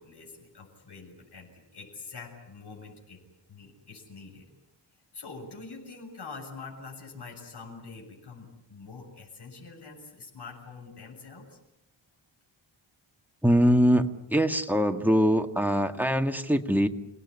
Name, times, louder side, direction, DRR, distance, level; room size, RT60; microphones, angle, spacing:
voice 1, 0.0-3.2 3.5-4.5 4.9-11.6, left 4 dB, 55° left, 0 dB, 7.4 m, -45 dB
voice 2, 13.4-16.9, equal, 5° right, 5 dB, 1.8 m, -23 dB
28.5 x 18.5 x 9.8 m, 0.87 s
wide cardioid pair, 110°, 47 cm